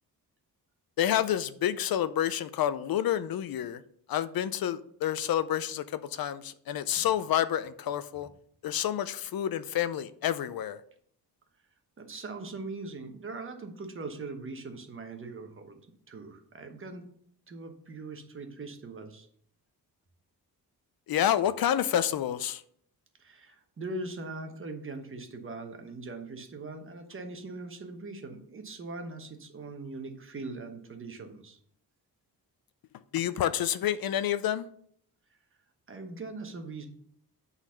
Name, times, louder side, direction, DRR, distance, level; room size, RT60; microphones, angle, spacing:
voice 1, 1.0-3.8 4.1-8.3 8.6-10.8 21.1-22.6 33.1-34.7, left 10 dB, 65° left, 0.5 m, -29 dB
voice 2, 12.0-15.8 16.1-17.1 17.5-19.3 23.2-31.6 35.9-36.9, right 3 dB, 35° right, 1.1 m, -41 dB
8.9 x 4.1 x 5.6 m
wide cardioid pair, 175°, 39 cm